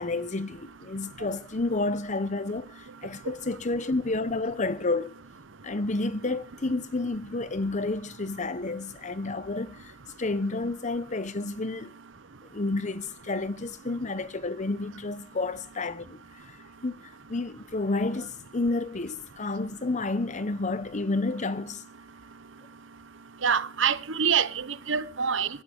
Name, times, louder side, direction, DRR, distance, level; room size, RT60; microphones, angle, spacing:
voice 1, 0.0-5.1 5.6-9.9 10.2-11.9 12.5-16.2 16.8-21.8, left 2 dB, 40° left, 0.9 m, -30 dB
voice 2, 23.4-25.5, right 7 dB, 80° right, 1.0 m, -25 dB
15.5 x 12.5 x 6.5 m
head